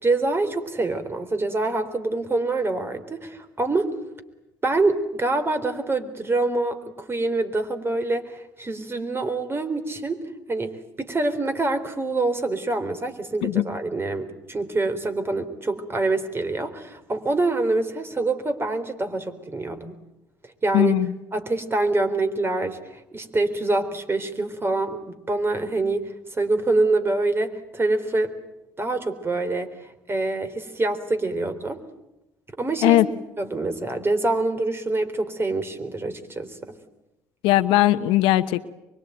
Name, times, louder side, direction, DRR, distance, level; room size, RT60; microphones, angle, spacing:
voice 1, 0.0-3.9 4.6-10.2 10.5-19.9 20.6-21.0 21.3-28.3 28.8-29.7 30.1-31.8 32.6-33.0 33.4-36.6, right 2 dB, 25° right, 8 dB, 3.7 m, -25 dB
voice 2, 20.7-21.1 32.8-33.1 37.4-38.7, left 15 dB, 70° left, 12 dB, 1.1 m, -19 dB
24.0 x 23.5 x 9.3 m, 0.93 s
hypercardioid pair, 65°, 9 cm